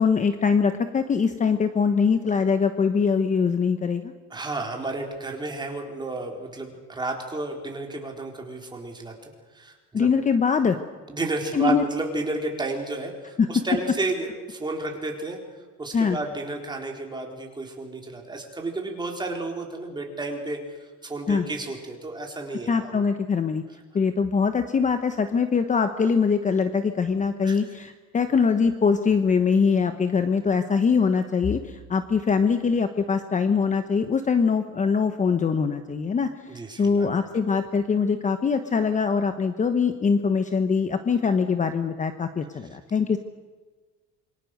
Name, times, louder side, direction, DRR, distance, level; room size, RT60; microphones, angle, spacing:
voice 1, 0.0-4.1 9.9-10.8 11.5-11.8 13.4-13.6 15.9-16.2 21.3-21.4 22.7-23.6 23.9-43.2, left 5 dB, 25° left, 8 dB, 1.1 m, -23 dB
voice 2, 4.3-10.1 11.1-15.4 15.8-20.6 21.0-23.1 27.4-27.6 36.5-37.1, right 2 dB, 15° right, 2 dB, 4.1 m, -32 dB
27.0 x 24.0 x 6.6 m, 1.3 s
cardioid pair, 155°, 30 cm